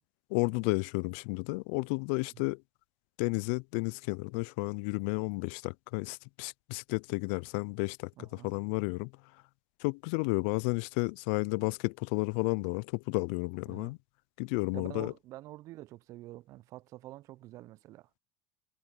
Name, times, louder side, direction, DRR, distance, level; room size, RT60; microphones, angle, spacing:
voice 1, 0.3-2.6 3.2-9.1 9.8-14.0 14.4-15.1, left 31 dB, 75° left, 0.4 m, -32 dB
voice 2, 8.2-8.5 13.7-14.0 14.7-18.2, right 16 dB, 60° right, 0.5 m, -47 dB
hypercardioid pair, 75°, 6 cm